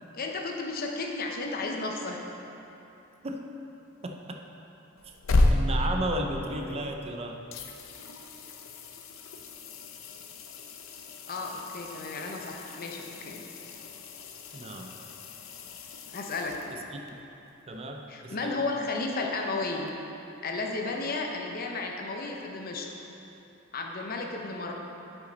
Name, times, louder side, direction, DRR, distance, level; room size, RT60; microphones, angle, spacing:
voice 1, 0.1-2.2 11.3-13.5 16.1-16.6 18.1-19.9 20.4-22.9 23.7-24.7, left 3 dB, 50° left, 1 dB, 0.7 m, -33 dB
voice 2, 4.0-4.4 5.5-7.4 14.5-14.9 16.7-17.0 17.7-18.6, right 1 dB, 30° right, 3 dB, 0.5 m, -34 dB
sound 1, 5.0-7.1 7.5-17.1 19.9-20.0, left 2 dB, 90° left, 0.6 m, -33 dB
8.2 x 5.8 x 4.0 m, 2.9 s
head